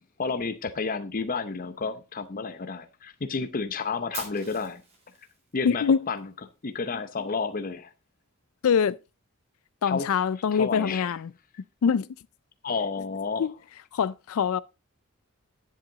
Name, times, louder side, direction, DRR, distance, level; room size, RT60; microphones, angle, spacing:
voice 1, 0.2-4.8 5.5-6.3 6.6-7.9 9.9-10.1 10.5-11.1 12.6-13.5, left 4 dB, 40° left, 0.7 m, -31 dB
Fire, 4.1-6.2, right 4 dB, 30° right, 3.4 m, -42 dB
voice 2, 5.6-6.1 8.6-9.0 9.8-11.3 11.8-12.1 13.4-13.5 13.9-14.6, left 6 dB, 75° left, 0.4 m, -24 dB
10.5 x 7.5 x 3.8 m
head